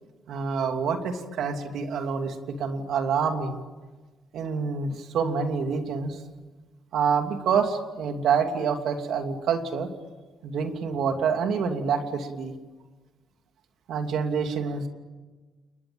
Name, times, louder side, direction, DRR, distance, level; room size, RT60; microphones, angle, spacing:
voice 1, 0.3-3.6 4.3-6.2 6.9-9.9 10.4-12.5 13.9-14.9, right 6 dB, 75° right, 5 dB, 2.9 m, -27 dB
29.5 x 21.5 x 9.0 m, 1.3 s
cardioid pair, 90°, 0 cm